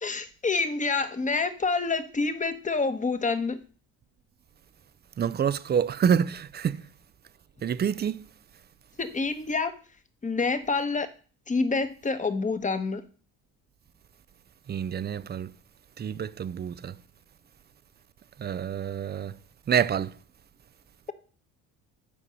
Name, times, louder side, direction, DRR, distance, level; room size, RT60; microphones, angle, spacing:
voice 1, 0.0-3.6 9.0-9.7 10.2-11.1 11.5-13.0, left 4 dB, 20° left, 1.2 m, -27 dB
voice 2, 5.2-6.9 7.6-8.2 14.7-15.5 16.0-17.0 18.4-19.4 19.7-20.1, right 8 dB, 30° right, 0.5 m, -27 dB
10.0 x 4.6 x 5.3 m
supercardioid pair, 80°, 36 cm